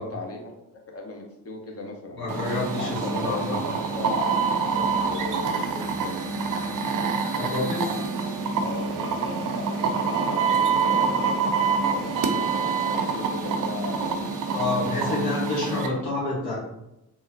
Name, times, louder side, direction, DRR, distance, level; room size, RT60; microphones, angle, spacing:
voice 1, 0.0-2.3 2.7-4.4 4.6-6.1 7.8-8.0 8.6-11.4 11.9-15.4 15.7-15.9, left 3 dB, 30° left, 1 dB, 0.9 m, -38 dB
voice 2, 2.2-3.6 7.4-7.9 14.5-16.5, left 2 dB, 50° left, -5 dB, 1.3 m, -28 dB
sound 1, 2.3-15.9, right 5 dB, 40° right, 0.5 m, -26 dB
3.7 x 2.1 x 2.7 m, 0.88 s
hypercardioid pair, 50°, 49 cm